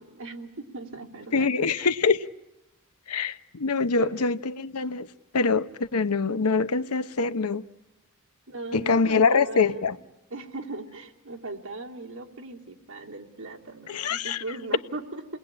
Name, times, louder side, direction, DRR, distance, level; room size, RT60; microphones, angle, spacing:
voice 1, 0.0-1.8 4.0-4.5 8.5-10.0 10.3-15.4, right 2 dB, 60° right, 2.8 m, -39 dB
voice 2, 1.3-2.2 3.1-5.1 5.3-7.6 8.7-10.0 13.9-14.4, left 4 dB, 90° left, 0.9 m, -24 dB
29.0 x 21.0 x 8.8 m
head